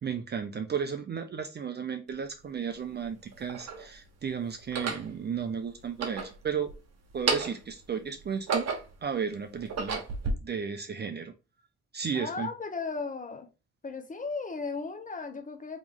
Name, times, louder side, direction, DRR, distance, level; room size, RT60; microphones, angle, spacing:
voice 1, 0.0-6.7 7.1-8.7 9.0-10.0 10.4-11.3 11.9-12.5, right 7 dB, 35° right, 0.5 m, -34 dB
sound 1, 2.1-2.2 3.0-3.8 4.6-5.1 5.8-6.8 7.1-7.7 8.2-9.0 9.5-10.3, right 4 dB, 60° right, 1.2 m, -32 dB
voice 2, 12.1-13.5 13.8-15.8, left 4 dB, 25° left, 0.9 m, -36 dB
3.6 x 3.0 x 3.6 m
cardioid pair, 90°, 30 cm